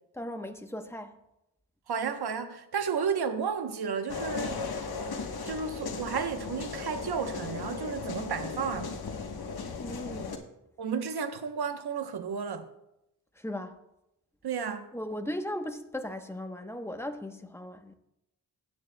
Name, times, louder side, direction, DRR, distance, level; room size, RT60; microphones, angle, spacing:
voice 1, 0.1-1.1 9.8-10.4 13.4-13.7 14.9-18.0, left 1 dB, 5° left, 0.9 m, -37 dB
voice 2, 1.9-4.8 5.4-9.0 10.8-12.7 14.4-14.9, right 6 dB, 60° right, 1.0 m, -32 dB
sound 1, 4.1-10.4, left 4 dB, 55° left, 1.2 m, -36 dB
15.5 x 9.4 x 2.2 m
cardioid pair, 70°, 43 cm